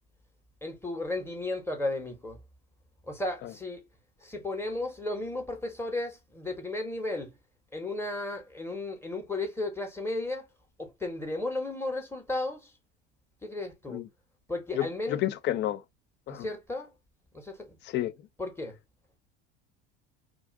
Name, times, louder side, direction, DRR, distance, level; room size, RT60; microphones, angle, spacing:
voice 1, 0.6-2.4 3.1-3.8 4.2-7.4 7.7-10.5 10.8-12.7 13.4-14.0 14.5-15.2 16.3-16.9 17.3-17.7 18.4-18.8, left 2 dB, 10° left, 0.9 m, -34 dB
voice 2, 14.7-15.8 16.3-16.5 17.9-18.1, left 13 dB, 35° left, 0.4 m, -30 dB
2.4 x 2.4 x 3.4 m
hypercardioid pair, 85°, 32 cm